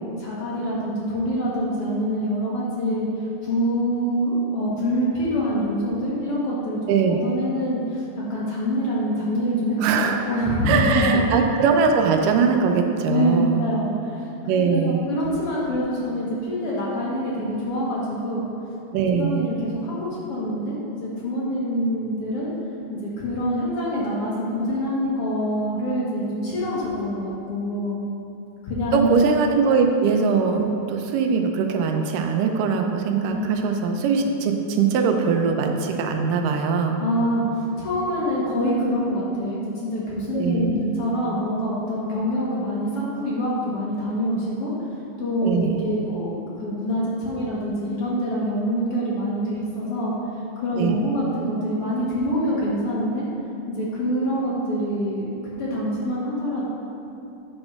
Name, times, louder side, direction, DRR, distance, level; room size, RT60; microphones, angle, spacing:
voice 1, 0.0-3.1 3.4-6.8 7.1-8.0 8.3-11.3 13.1-14.3 14.6-18.5 19.1-22.5 22.9-28.0 28.6-29.1 33.2-33.5 37.0-44.7 45.2-50.2 50.6-53.3 53.7-56.7, equal, 60° left, -6 dB, 1.8 m, -25 dB
voice 2, 6.9-7.2 9.8-10.2 10.7-13.6 14.5-15.0 18.9-19.5 28.9-37.0 40.3-40.7 45.4-45.8 50.8-51.0, right 5 dB, 90° right, 4 dB, 2.3 m, -21 dB
8.8 x 4.4 x 5.8 m, 2.7 s
omnidirectional pair, 3.7 m